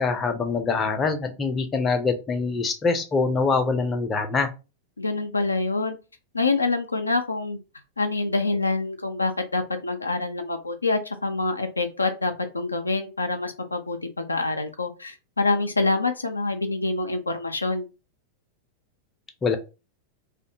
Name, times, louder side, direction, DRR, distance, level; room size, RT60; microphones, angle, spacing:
voice 1, 0.0-4.5 19.4-19.6, left 4 dB, 20° left, 6 dB, 0.5 m, -24 dB
voice 2, 5.0-6.0 6.3-7.6 8.0-17.9, left 3 dB, 80° left, 6 dB, 0.3 m, -26 dB
2.6 x 2.1 x 2.6 m, 0.30 s
figure-of-eight pair, 90°, 0 cm